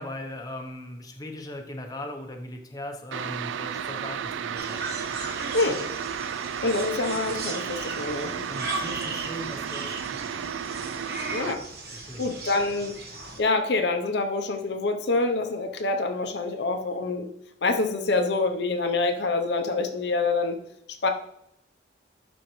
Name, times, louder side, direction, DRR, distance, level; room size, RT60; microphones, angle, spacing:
voice 1, 0.0-4.9 8.5-10.1 12.0-12.4, left 1 dB, 20° left, 3 dB, 0.7 m, -39 dB
sound 1, 3.1-11.5, right 8 dB, 80° right, 0.4 m, -33 dB
sound 2, 4.6-13.4, right 3 dB, 55° right, 1.1 m, -37 dB
voice 2, 6.6-8.5 11.3-11.6 11.9-13.0 13.4-17.3 17.6-20.6 20.9-21.1, left 3 dB, 60° left, 5 dB, 0.6 m, -26 dB
11.5 x 4.3 x 3.1 m, 0.80 s
head